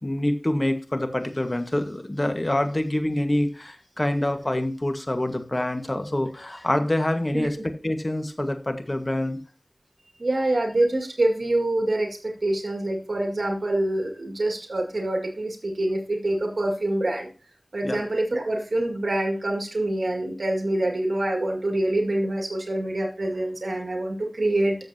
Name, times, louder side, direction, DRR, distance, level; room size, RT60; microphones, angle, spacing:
voice 1, 0.0-9.4 17.8-18.0, left 1 dB, 35° left, 7 dB, 1.5 m, -26 dB
voice 2, 10.2-17.3 17.7-24.8, right 1 dB, 80° right, 1 dB, 2.0 m, -25 dB
13.5 x 7.1 x 2.8 m, 0.37 s
wide cardioid pair, 45°, 0 cm